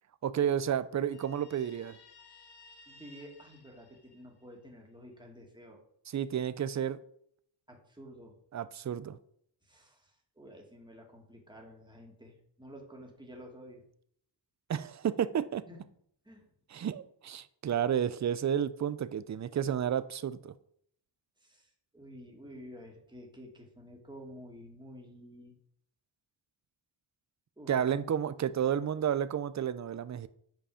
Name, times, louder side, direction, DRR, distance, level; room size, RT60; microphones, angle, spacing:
voice 1, 0.2-2.0 6.1-7.0 8.5-9.2 14.7-15.6 16.7-20.5 27.7-30.3, right 9 dB, 40° right, 14 dB, 0.5 m, -31 dB
Guitar, 1.1-4.7, left 3 dB, 55° left, 1.4 m, -57 dB
voice 2, 2.9-5.8 7.7-8.4 9.6-13.8 15.7-15.8 16.2-16.5 21.4-25.5 27.6-27.7, equal, 10° right, 0 dB, 2.2 m, -51 dB
7.8 x 5.2 x 4.9 m, 0.67 s
cardioid pair, 75°, 47 cm